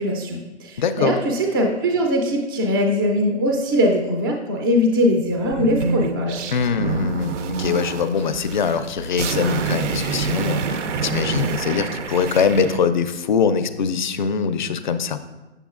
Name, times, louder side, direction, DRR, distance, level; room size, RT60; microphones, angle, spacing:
voice 1, 0.0-6.5, equal, 20° right, 1 dB, 0.4 m, -21 dB
voice 2, 0.8-1.2 6.5-15.2, left 6 dB, 45° left, 11 dB, 0.4 m, -22 dB
sound 1, 5.4-12.8, right 5 dB, 80° right, 0.6 m, -27 dB
8.0 x 6.8 x 2.4 m, 1.1 s
hypercardioid pair, 150°, 35 cm